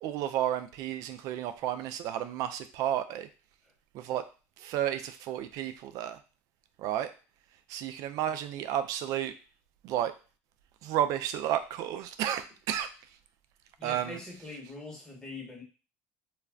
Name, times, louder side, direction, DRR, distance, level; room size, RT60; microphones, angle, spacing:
voice 1, 0.0-3.3 3.9-4.2 4.6-6.2 6.8-7.1 7.7-9.3 9.8-10.1 10.8-12.9 13.8-14.2, right 11 dB, 65° right, 10 dB, 0.4 m, -32 dB
voice 2, 13.8-15.6, left 2 dB, 10° left, -1 dB, 1.1 m, -43 dB
2.4 x 2.1 x 3.4 m, 0.34 s
supercardioid pair, 90°, 7 cm